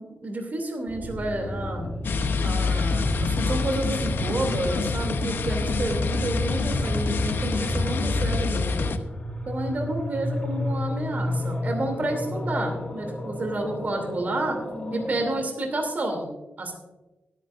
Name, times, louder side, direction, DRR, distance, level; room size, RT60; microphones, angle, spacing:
voice 1, 0.0-1.9 2.4-8.9 9.5-14.6 14.9-16.3 16.6-16.7, right 2 dB, 50° right, 2 dB, 2.9 m, -30 dB
sound 1, 0.9-15.4, left 1 dB, 35° left, 3.8 m, -32 dB
sound 2, 2.0-9.0, left 4 dB, 70° left, 0.8 m, -27 dB
22.0 x 9.5 x 2.6 m, 1.1 s
wide cardioid pair, 95°, 4 cm